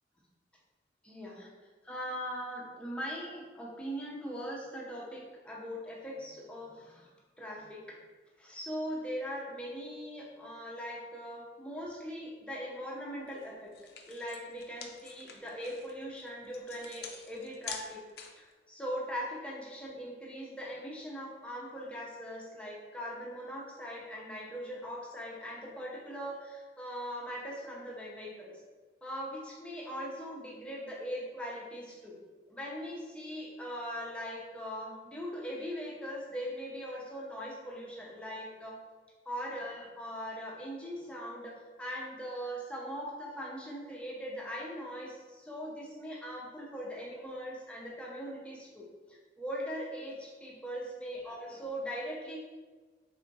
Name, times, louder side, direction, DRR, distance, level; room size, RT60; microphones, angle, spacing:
voice 1, 1.0-1.5 1.8-7.1 7.4-7.8 8.4-13.7 14.1-18.0 18.3-28.5 29.0-32.2 32.5-38.8 39.3-52.4, equal, 5° left, -4 dB, 0.6 m, -40 dB
sound 1, 13.3-13.4 13.7-18.5, left 6 dB, 60° left, 0.4 m, -46 dB
4.1 x 3.4 x 2.7 m, 1.4 s
head